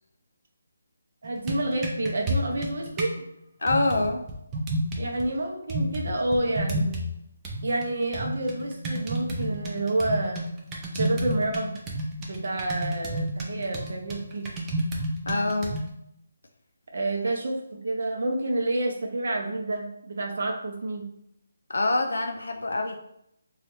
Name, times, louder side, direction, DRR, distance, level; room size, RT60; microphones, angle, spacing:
sound 1, 1.2-3.2 3.7-5.2 5.7-7.2 7.4-15.9, right 1 dB, 10° right, 0.3 m, -31 dB
voice 1, 1.2-3.2 5.0-7.0 7.6-10.4 10.9-11.8 12.3-14.5 16.9-21.1, right 2 dB, 60° right, 1 dB, 0.6 m, -29 dB
voice 2, 3.6-4.2 15.3-15.8 21.7-23.0, left 2 dB, 85° left, 4 dB, 0.3 m, -25 dB
3.0 x 2.3 x 3.0 m, 0.77 s
hypercardioid pair, 175°, 0 cm